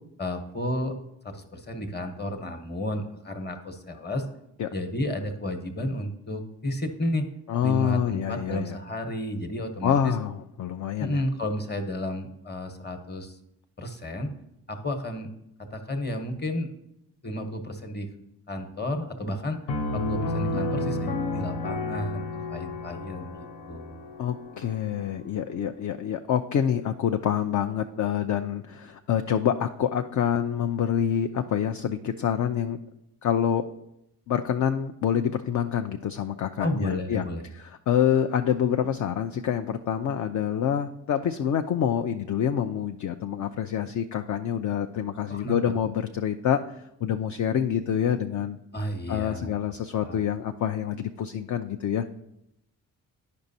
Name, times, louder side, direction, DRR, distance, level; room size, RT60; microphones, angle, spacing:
voice 1, 0.2-0.9 1.2-4.2 4.7-7.2 7.6-10.1 11.0-13.4 13.8-14.3 14.7-15.3 15.6-16.7 17.2-18.1 18.5-19.6 19.9-23.9 36.6-37.4 45.3-45.7 48.7-49.5 50.0-50.2, left 1 dB, 25° left, 6 dB, 1.1 m, -32 dB
voice 2, 7.5-8.8 9.8-11.2 24.2-32.8 33.2-33.7 34.3-37.2 37.5-52.1, left 9 dB, 45° left, 7 dB, 0.5 m, -27 dB
Piano, 19.7-25.2, left 2 dB, 70° left, 0.8 m, -31 dB
10.0 x 5.2 x 2.7 m, 0.82 s
hypercardioid pair, 40°, 44 cm